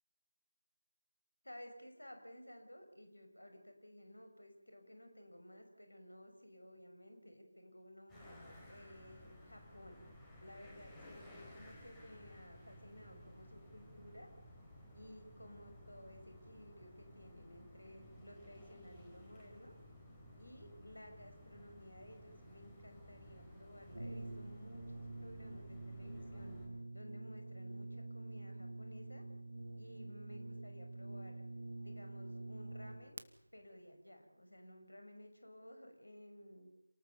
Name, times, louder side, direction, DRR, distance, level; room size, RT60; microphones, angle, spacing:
voice 1, 1.4-8.4 8.7-10.0 10.4-14.3 14.9-19.7 20.3-26.6 26.9-29.2 29.8-31.4 31.8-33.2 33.5-36.7, equal, 85° left, 6 dB, 6.1 m, -56 dB
sound 1, 8.1-26.7, equal, 10° left, 5.0 m, -57 dB
Brass instrument, 23.9-33.3, right 2 dB, 80° right, 1.6 m, -47 dB
28.0 x 19.0 x 7.1 m, 0.80 s
figure-of-eight pair, 165°, 0 cm